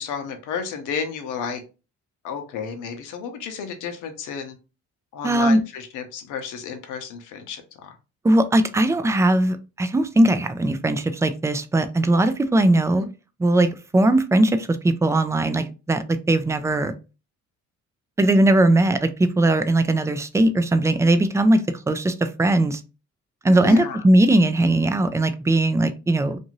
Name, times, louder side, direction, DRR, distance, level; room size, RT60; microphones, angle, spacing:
voice 1, 0.0-1.6 2.2-4.6 5.1-7.9 13.0-13.1 23.6-24.0, left 6 dB, 90° left, 6 dB, 0.7 m, -32 dB
voice 2, 5.2-5.6 8.2-13.1 13.4-16.9 18.2-22.8 23.4-26.4, right 1 dB, 10° right, 10 dB, 0.3 m, -19 dB
2.6 x 2.5 x 2.9 m, 0.31 s
cardioid pair, 90°, 30 cm